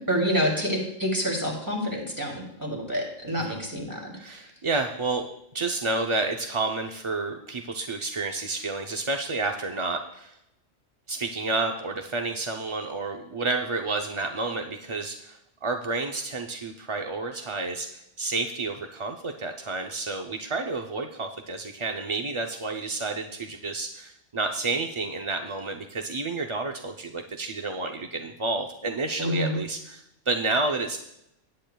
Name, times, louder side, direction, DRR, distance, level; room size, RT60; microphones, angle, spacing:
voice 1, 0.0-4.4 29.2-29.6, equal, 15° right, -1 dB, 2.7 m, -28 dB
voice 2, 4.2-5.3 5.5-10.3 11.1-31.0, right 3 dB, 40° right, 3 dB, 0.4 m, -30 dB
18.0 x 8.9 x 2.3 m, 0.81 s
omnidirectional pair, 1.3 m